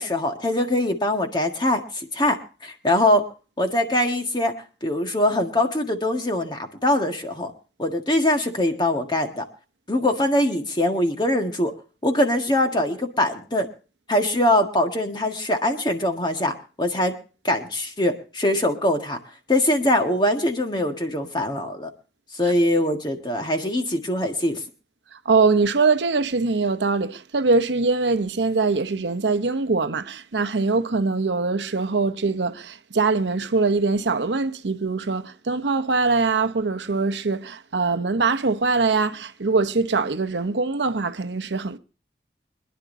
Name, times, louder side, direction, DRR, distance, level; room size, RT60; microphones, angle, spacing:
voice 1, 0.0-3.2 3.6-4.5 4.8-7.5 7.8-9.4 9.9-11.7 12.0-13.7 14.1-17.1 17.4-19.2 19.5-21.9 22.3-24.6, left 1 dB, 25° left, 1.6 m, -22 dB
voice 2, 25.1-41.8, right 4 dB, 85° right, 0.8 m, -22 dB
25.5 x 10.5 x 2.7 m
head